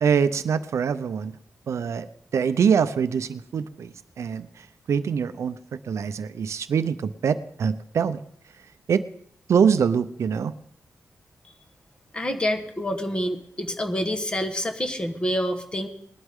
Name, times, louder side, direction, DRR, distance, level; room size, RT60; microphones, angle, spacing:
voice 1, 0.0-1.4 1.7-2.1 2.3-4.5 4.9-8.2 8.9-9.0 9.5-10.5, right 7 dB, 65° right, 12 dB, 0.6 m, -24 dB
voice 2, 12.1-15.9, equal, 20° left, 6 dB, 1.3 m, -27 dB
20.5 x 11.5 x 3.6 m, 0.69 s
wide cardioid pair, 180°, 5 cm